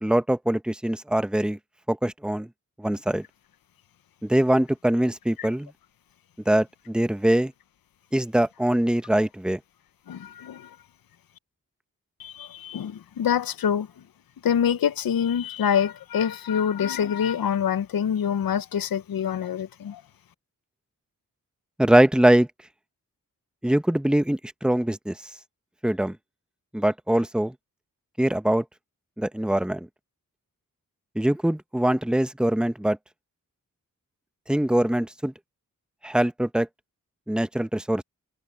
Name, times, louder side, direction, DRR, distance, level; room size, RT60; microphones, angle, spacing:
voice 1, 0.0-1.6 1.9-2.5 2.8-3.2 4.2-5.7 6.4-7.5 8.1-9.6 21.8-22.5 23.6-25.3 25.8-26.2 26.7-27.5 28.2-28.6 29.2-29.9 31.1-33.0 34.5-35.3 36.0-36.7 37.3-38.0, right 1 dB, ahead, 1.1 m, -23 dB
voice 2, 10.1-10.8 12.2-13.9 14.4-20.0, left 8 dB, 80° left, 0.8 m, -26 dB
cardioid pair, 55°, 35 cm